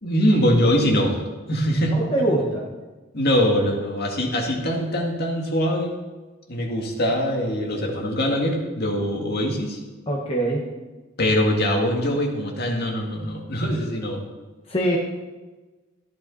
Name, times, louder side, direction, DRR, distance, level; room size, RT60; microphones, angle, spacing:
voice 1, 0.0-2.3 3.1-6.0 6.5-9.8 11.2-14.2, equal, 50° left, 0 dB, 2.1 m, -23 dB
voice 2, 1.9-2.7 10.1-10.7 14.7-15.0, right 1 dB, 30° left, -3 dB, 1.3 m, -23 dB
14.0 x 10.5 x 4.2 m, 1.2 s
head